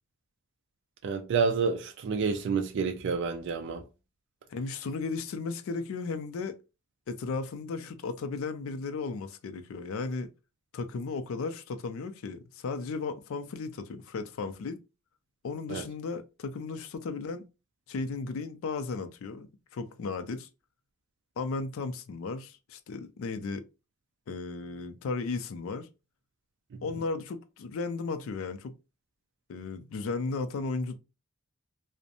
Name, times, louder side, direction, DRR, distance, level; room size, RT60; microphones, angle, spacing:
voice 1, 1.0-3.8 15.7-15.8, right 5 dB, 55° right, 0.3 m, -29 dB
voice 2, 4.5-6.6 7.1-10.3 10.7-14.8 15.4-17.4 17.9-19.5 19.7-20.5 21.4-23.7 24.3-25.9 26.8-28.7 29.5-31.0, left 4 dB, 65° left, 0.4 m, -35 dB
2.5 x 2.0 x 2.7 m
head